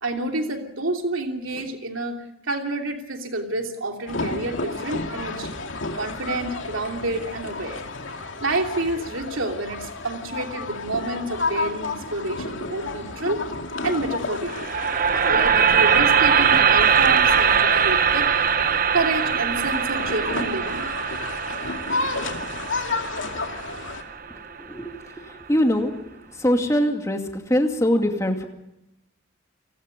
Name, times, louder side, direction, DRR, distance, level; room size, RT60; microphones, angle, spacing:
voice 1, 0.0-5.6 5.9-7.8 8.1-13.5 13.8-14.7 15.3-18.3 18.9-20.9, right 2 dB, 85° right, 3 dB, 3.1 m, -29 dB
sound 1, 4.1-24.0, left 3 dB, 75° left, 2.4 m, -31 dB
sound 2, 14.5-24.6, right 7 dB, 45° right, 0.8 m, -21 dB
voice 2, 25.5-25.9 26.4-27.2 27.5-28.4, equal, 15° left, 4 dB, 2.5 m, -21 dB
30.0 x 19.5 x 5.3 m, 0.89 s
head